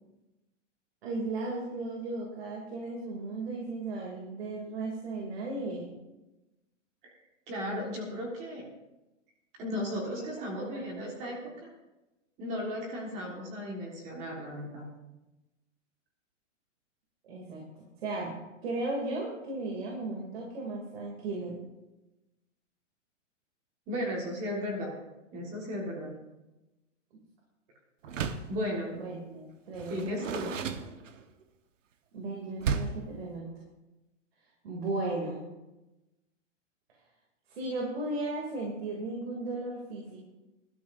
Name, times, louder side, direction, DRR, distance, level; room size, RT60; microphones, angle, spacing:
voice 1, 1.0-5.9 10.1-10.2 10.5-11.1 17.2-18.3 18.6-21.6 28.9-30.4 32.1-33.5 34.6-35.5 37.5-40.2, right 2 dB, 55° right, -1 dB, 2.7 m, -36 dB
voice 2, 7.5-8.6 9.6-11.7 12.4-14.9 23.9-24.9 25.3-26.1 28.5-28.9 29.9-30.5, equal, 20° right, -1 dB, 1.6 m, -35 dB
Door, 28.0-28.6 29.7-31.4 32.6-33.1, right 6 dB, 80° right, 1.2 m, -33 dB
20.0 x 12.5 x 2.6 m, 1.0 s
hypercardioid pair, 175°, 37 cm